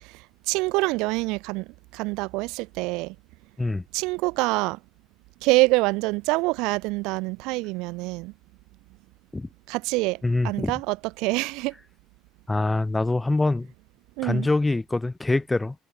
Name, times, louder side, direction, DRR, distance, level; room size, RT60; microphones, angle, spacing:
voice 1, 0.5-1.6 1.9-3.1 3.9-4.8 5.4-8.3 9.7-10.2 10.4-11.7 14.2-14.5, right 24 dB, 85° right, 3.6 m, -25 dB
voice 2, 10.2-10.7 12.5-13.7 14.2-15.8, left 2 dB, 10° left, 7.2 m, -24 dB
cardioid pair, 125°, 0 cm